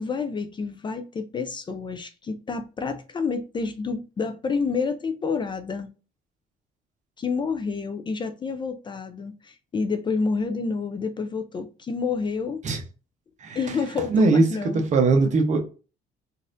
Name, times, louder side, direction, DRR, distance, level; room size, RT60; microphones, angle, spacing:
voice 1, 0.0-5.9 7.2-12.6 13.5-14.8 15.2-15.3, left 4 dB, 30° left, 0.4 m, -29 dB
voice 2, 14.1-14.4 14.9-15.6, right 3 dB, 45° right, 0.9 m, -19 dB
4.0 x 2.5 x 2.5 m
cardioid pair, 110°, 17 cm